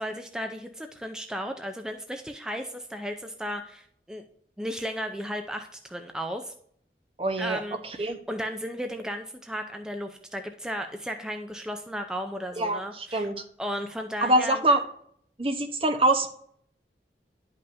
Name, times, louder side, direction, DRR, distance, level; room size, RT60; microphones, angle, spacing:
voice 1, 0.0-4.2 4.6-6.5 7.4-13.3 13.6-14.6, equal, 5° right, 5 dB, 0.5 m, -35 dB
voice 2, 7.2-8.2 12.6-13.4 14.2-14.8 15.4-16.3, right 1 dB, 30° right, 6 dB, 0.9 m, -25 dB
11.0 x 5.5 x 2.6 m, 0.64 s
head